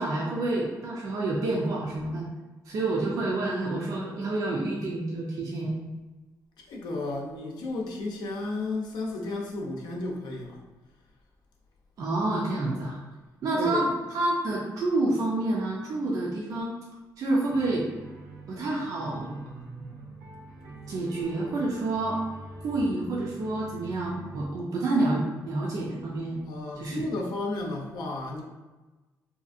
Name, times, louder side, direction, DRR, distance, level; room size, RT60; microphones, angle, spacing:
voice 1, 0.0-2.3 2.7-5.7 12.0-13.0 13.4-16.7 17.2-17.9 18.5-19.4 20.9-22.2 22.6-26.4 26.8-27.1, right 2 dB, 55° right, -4 dB, 0.4 m, -28 dB
voice 2, 6.7-10.6 13.5-13.9 26.4-28.4, left 2 dB, 85° left, -1 dB, 0.5 m, -33 dB
sound 1, 17.5-24.5, right 2 dB, 85° right, 0.8 m, -44 dB
2.7 x 2.4 x 2.4 m, 1.2 s
cardioid pair, 145°, 7 cm